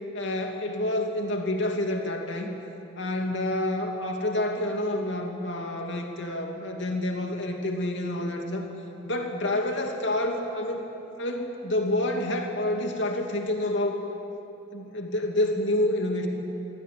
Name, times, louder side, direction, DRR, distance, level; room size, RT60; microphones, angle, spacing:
voice 1, 0.1-2.5 3.0-8.7 9.0-10.8 11.2-14.0 14.7-16.3, left 1 dB, 60° left, 2 dB, 2.7 m, -28 dB
23.5 x 16.0 x 9.4 m, 3.0 s
head